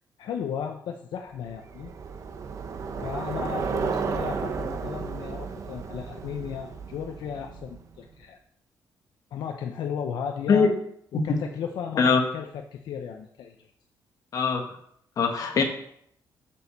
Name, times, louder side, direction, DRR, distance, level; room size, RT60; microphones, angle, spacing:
voice 1, 0.2-1.9 3.0-8.4 9.3-10.7 11.1-13.7, left 7 dB, 75° left, 4 dB, 0.8 m, -35 dB
Bicycle, 1.4-8.0, right 5 dB, 45° right, 0.9 m, -33 dB
voice 2, 14.3-14.6 15.2-15.6, left 5 dB, 50° left, 3 dB, 1.7 m, -21 dB
6.8 x 6.5 x 7.1 m, 0.68 s
cardioid pair, 155°, 8 cm